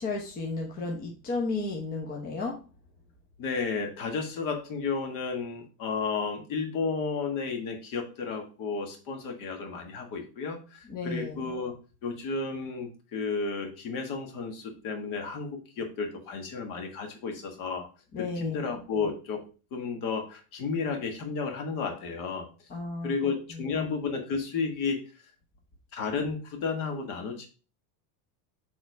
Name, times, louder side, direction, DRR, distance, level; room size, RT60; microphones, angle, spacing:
voice 1, 0.0-2.6 10.9-11.5 18.1-18.6 22.7-23.8, left 3 dB, 20° left, 0 dB, 0.9 m, -33 dB
voice 2, 3.4-11.7 12.0-17.9 18.2-22.5 23.0-25.0 25.9-27.5, left 4 dB, 40° left, 4 dB, 1.6 m, -32 dB
6.9 x 3.6 x 4.6 m, 0.35 s
supercardioid pair, 155°, 48 cm